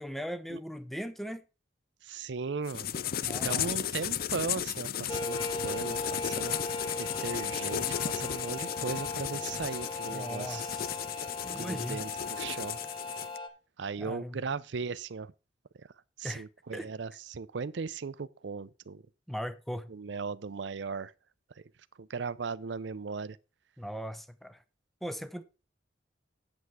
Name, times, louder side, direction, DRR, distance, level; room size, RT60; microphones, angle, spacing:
voice 1, 0.0-1.4 3.2-3.7 10.1-11.0 11.4-12.0 14.0-14.4 16.2-16.4 16.7-16.9 19.3-19.9 23.8-24.6 25.0-25.4, equal, ahead, 0.6 m, -39 dB
voice 2, 2.0-2.9 3.2-6.6 7.0-10.6 11.5-12.8 13.8-15.3 16.2-19.0 19.9-21.1 21.6-21.7 22.0-23.4, right 5 dB, 75° right, 0.5 m, -37 dB
sound 1, 2.7-13.4, left 10 dB, 55° left, 0.4 m, -35 dB
sound 2, 5.1-13.5, left 2 dB, 30° left, 1.2 m, -38 dB
8.2 x 7.8 x 4.7 m
head